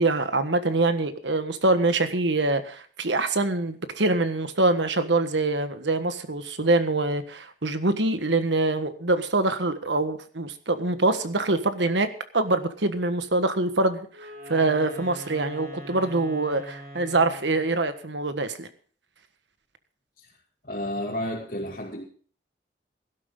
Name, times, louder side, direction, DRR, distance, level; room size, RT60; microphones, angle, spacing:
voice 1, 0.0-12.1 12.3-14.1 14.5-18.7, right 2 dB, 80° right, 10 dB, 1.4 m, -24 dB
Wind instrument woodwind instrument, 14.1-17.8, equal, 50° right, 4.6 m, -42 dB
voice 2, 20.6-22.0, left 1 dB, 50° left, -4 dB, 2.3 m, -31 dB
17.0 x 12.0 x 3.8 m, 0.44 s
head